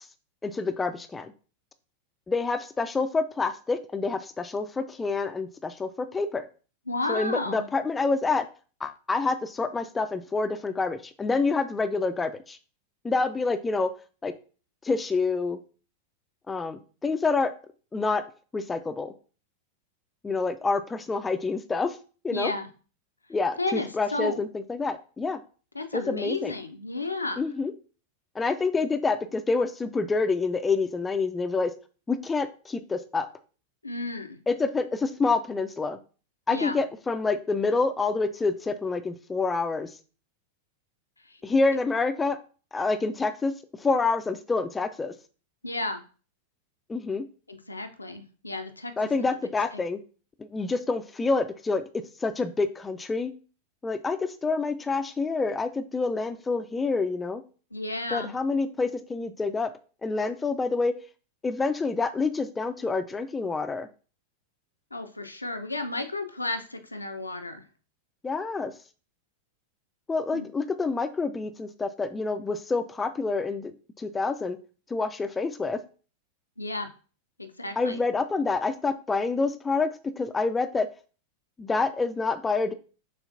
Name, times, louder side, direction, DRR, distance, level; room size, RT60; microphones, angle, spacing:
voice 1, 0.4-1.3 2.3-6.5 7.1-8.5 8.8-12.6 13.0-13.9 14.2-14.3 14.8-15.6 16.5-17.5 17.9-18.2 18.5-19.1 20.2-22.0 22.2-22.5 23.3-25.4 25.9-26.5 27.4-27.7 28.4-31.7 32.1-33.3 34.5-36.0 36.5-39.9 41.4-42.4 42.7-43.5 43.8-45.1 46.9-47.2 49.0-50.0 50.4-53.3 53.8-57.4 58.1-59.7 60.0-60.9 61.4-63.9 68.2-68.7 70.1-74.6 74.9-75.8 77.8-79.9 80.2-80.9 81.6-82.7, left 3 dB, 15° left, 9 dB, 0.3 m, -27 dB
voice 2, 6.9-7.7 22.3-22.7 23.6-24.5 25.7-27.4 33.8-34.4 36.5-36.8 41.3-41.4 45.6-46.0 47.5-48.9 49.2-49.3 57.7-58.3 64.9-67.6 70.3-70.5 76.6-76.9 77.4-78.0, left 2 dB, 85° left, 6 dB, 0.5 m, -32 dB
6.4 x 2.5 x 2.5 m, 0.37 s
figure-of-eight pair, 90°, 0 cm